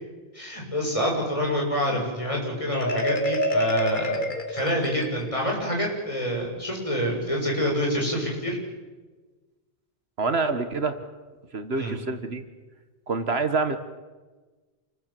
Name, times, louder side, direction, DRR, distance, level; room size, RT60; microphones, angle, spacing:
voice 1, 0.3-4.2 4.5-8.6 11.7-11.9, equal, 30° left, -1 dB, 7.8 m, -27 dB
Marimba xylophone, 2.7-5.5, equal, 50° left, 2.1 m, -27 dB
voice 2, 10.2-11.0 11.5-12.4 13.1-13.8, right 4 dB, 70° right, 9 dB, 1.8 m, -26 dB
28.0 x 22.0 x 7.7 m, 1.3 s
omnidirectional pair, 1.1 m